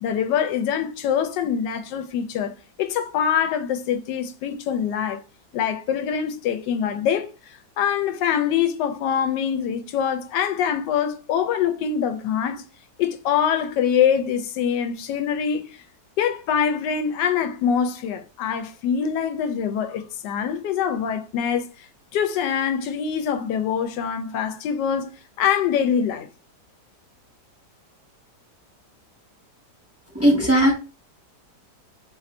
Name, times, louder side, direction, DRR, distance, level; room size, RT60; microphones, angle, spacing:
voice 1, 0.0-5.2 5.5-7.3 7.8-12.7 13.0-15.8 16.2-25.1 25.4-26.3, left 8 dB, 85° left, 1.2 m, -24 dB
voice 2, 30.1-30.7, equal, 10° right, 0.8 m, -17 dB
3.1 x 2.5 x 4.1 m
omnidirectional pair, 1.8 m